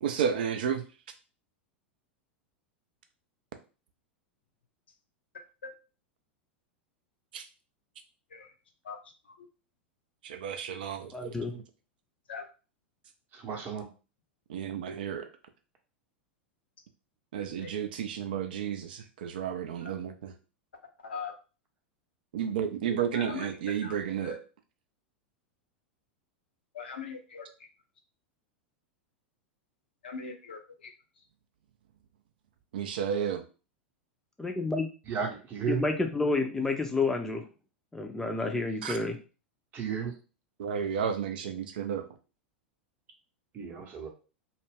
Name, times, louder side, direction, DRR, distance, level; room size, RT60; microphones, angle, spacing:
voice 1, 0.0-0.8 7.3-7.4 10.2-11.6 14.5-15.3 17.3-20.3 22.3-24.4 32.7-33.4 38.8-39.0 40.6-42.1, right 8 dB, 60° right, 7 dB, 0.4 m, -32 dB
voice 2, 5.3-5.7 8.3-8.5 8.8-9.0 9.3-9.5 12.3-12.4 17.6-17.7 19.8-19.9 21.0-21.3 23.1-23.5 23.8-23.9 24.2-24.4 26.7-27.7 30.0-30.9, left 5 dB, 70° left, 4 dB, 0.6 m, -41 dB
voice 3, 11.1-11.5 34.4-34.9 35.7-37.4 37.9-39.2, left 3 dB, 10° left, 4 dB, 0.5 m, -29 dB
voice 4, 13.3-13.9 35.1-35.8 39.7-40.1 43.5-44.1, right 7 dB, 30° right, 3 dB, 0.7 m, -33 dB
2.3 x 2.1 x 3.3 m, 0.34 s
figure-of-eight pair, 90°, 6 cm